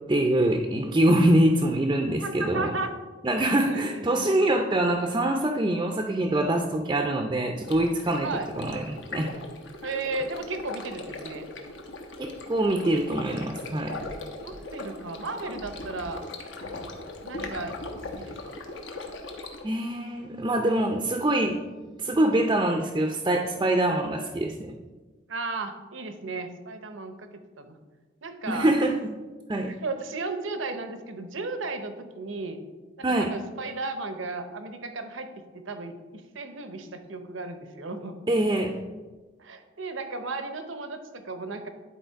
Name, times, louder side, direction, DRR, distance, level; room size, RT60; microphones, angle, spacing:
voice 1, 0.1-2.7 3.2-8.3 8.6-9.4 12.2-14.0 19.6-24.7 28.5-29.1 29.5-29.7 33.0-33.3 38.3-38.8, right 1 dB, 20° right, 3 dB, 0.4 m, -24 dB
voice 2, 2.2-2.9 3.6-4.3 8.2-8.5 9.8-11.5 14.4-16.2 17.2-17.8 18.2-18.6 25.3-27.3 27.6-27.8 28.2-28.7 29.6-32.6 33.0-35.3 35.5-38.2 39.4-41.7, right 3 dB, 85° right, 8 dB, 0.8 m, -35 dB
Stream, 7.6-19.6, left 2 dB, 75° left, 1.0 m, -39 dB
10.0 x 4.2 x 4.5 m, 1.3 s
head